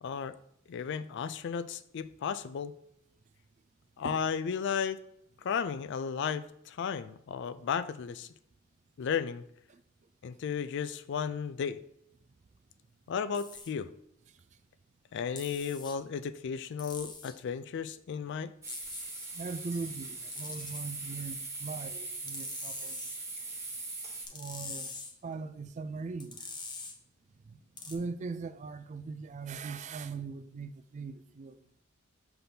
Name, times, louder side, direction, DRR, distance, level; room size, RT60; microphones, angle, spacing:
voice 1, 0.0-0.4 0.7-2.7 4.0-5.0 5.4-8.3 9.0-9.4 10.2-11.8 13.1-13.9 15.1-18.5, left 7 dB, 60° left, 0.3 m, -34 dB
sound 1, 13.3-13.7 15.4-16.0 16.8-17.3 18.7-19.3 20.3-20.9 22.3-23.2 24.3-25.1 26.2-26.9 27.8-28.0, left 4 dB, 20° left, 0.7 m, -44 dB
sound 2, 18.6-24.3, right 3 dB, 15° right, 1.2 m, -40 dB
voice 2, 19.3-23.0 24.3-24.9 25.2-26.5 27.5-27.6 27.8-31.6, right 4 dB, 35° right, 0.3 m, -40 dB
6.9 x 5.8 x 2.7 m
head